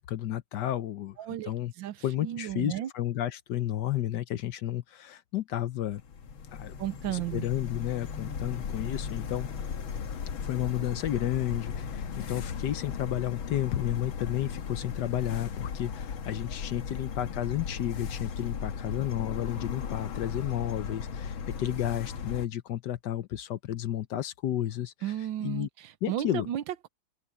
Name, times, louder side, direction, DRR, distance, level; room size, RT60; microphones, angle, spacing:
voice 1, 0.0-1.2 1.4-1.7 2.0-6.0 6.5-6.7 7.1-9.5 10.4-25.1 25.4-25.7 26.0-26.5, left 12 dB, 65° left, 1.2 m, -32 dB
voice 2, 1.2-1.5 1.8-2.9 6.8-7.5 25.0-26.9, right 12 dB, 75° right, 1.5 m, -34 dB
sound 1, 5.9-22.5, left 6 dB, 85° left, 2.2 m, -37 dB
omnidirectional pair, 2.2 m